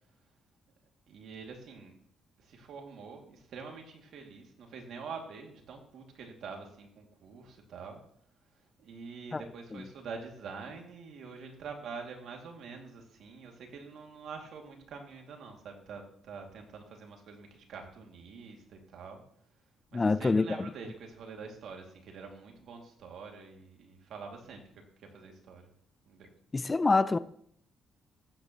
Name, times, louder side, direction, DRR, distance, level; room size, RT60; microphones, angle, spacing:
voice 1, 1.1-1.9 2.4-8.0 8.8-19.2 19.9-24.6 25.0-25.7 26.1-26.4, right 5 dB, 70° right, 2.4 m, -46 dB
voice 2, 19.9-20.7 26.5-27.2, left 3 dB, 25° left, 0.4 m, -26 dB
14.5 x 9.5 x 3.0 m
cardioid pair, 90°, 0 cm